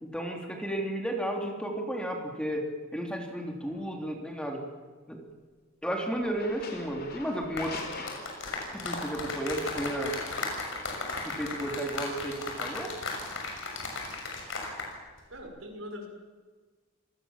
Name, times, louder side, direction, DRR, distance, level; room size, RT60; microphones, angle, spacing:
voice 1, 0.0-4.6 5.1-5.2 5.8-7.8 8.7-10.1 11.2-12.9, right 1 dB, 5° left, 2 dB, 3.4 m, -33 dB
sound 1, 3.6-3.9 6.2-9.0, left 3 dB, 50° left, 4.6 m, -43 dB
sound 2, 7.4-14.9 15.2-15.4, left 3 dB, 70° left, 6.6 m, -36 dB
voice 2, 15.3-16.1, left 1 dB, 80° right, 4 dB, 6.1 m, -41 dB
28.0 x 20.0 x 7.4 m, 1.4 s
head